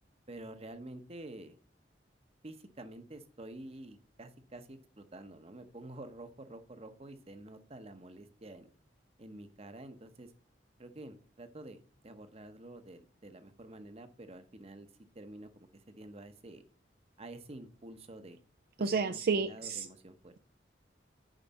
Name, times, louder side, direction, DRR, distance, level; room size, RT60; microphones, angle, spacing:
voice 1, 0.3-1.6 2.4-8.7 9.2-10.3 10.8-14.9 15.1-16.6 17.2-18.4 18.8-20.3, right 1 dB, 35° right, 9 dB, 0.9 m, -49 dB
voice 2, 18.8-19.9, right 4 dB, 55° right, 8 dB, 0.5 m, -30 dB
9.0 x 5.4 x 4.1 m, 0.43 s
head